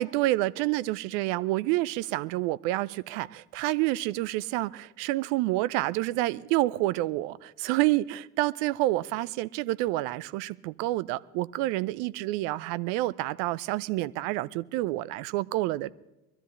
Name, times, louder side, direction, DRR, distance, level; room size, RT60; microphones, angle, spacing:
voice 1, 0.0-15.9, right 17 dB, 60° right, 19 dB, 0.7 m, -28 dB
24.0 x 13.0 x 3.2 m, 0.98 s
hypercardioid pair, 70°, 45 cm